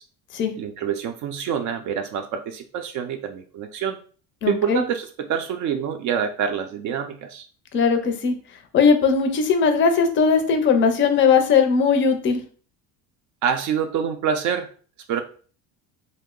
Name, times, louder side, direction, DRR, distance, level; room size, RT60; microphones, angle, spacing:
voice 1, 0.6-4.0 4.5-7.5 13.4-14.7 15.1-15.2, right 7 dB, 50° right, 7 dB, 0.4 m, -26 dB
voice 2, 4.4-4.8 7.7-8.3 8.7-12.4, left 5 dB, 30° left, 6 dB, 0.5 m, -19 dB
2.7 x 2.0 x 3.6 m, 0.40 s
cardioid pair, 135°, 40 cm